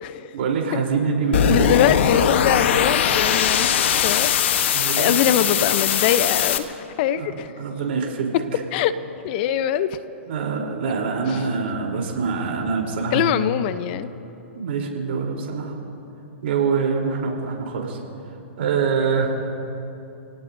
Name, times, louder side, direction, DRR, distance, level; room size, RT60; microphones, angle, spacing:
voice 1, 0.3-1.8 4.7-5.3 7.2-8.6 10.3-13.4 14.5-15.8 16.4-18.0 18.6-19.3, right 5 dB, 60° right, 0 dB, 3.6 m, -25 dB
sound 1, 1.3-6.6, left 8 dB, 65° left, 1.1 m, -20 dB
voice 2, 1.5-4.3 4.9-6.7 7.0-7.5 8.7-8.9 9.2-10.0 11.3-11.4 13.1-14.1, left 10 dB, 45° left, 13 dB, 0.7 m, -22 dB
29.5 x 18.0 x 2.7 m, 2.8 s
hypercardioid pair, 120°, 7 cm